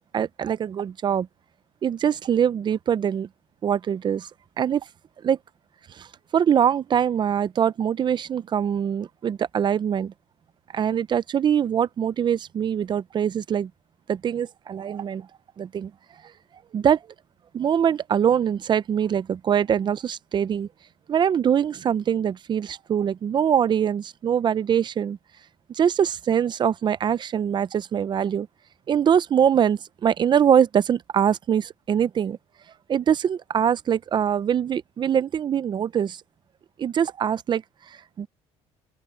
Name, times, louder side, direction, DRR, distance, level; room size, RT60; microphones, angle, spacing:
voice 1, 0.1-1.3 1.8-3.3 3.6-4.3 4.6-4.8 5.2-5.4 6.0-6.1 6.3-10.1 10.7-13.7 14.1-15.3 15.6-15.9 16.7-17.0 17.5-20.7 21.1-25.2 25.7-28.5 28.9-32.4 32.9-36.2 36.8-37.6 38.2-38.3, right 8 dB, 40° right, 0.6 m, -23 dB
open air
cardioid pair, 115°, 12 cm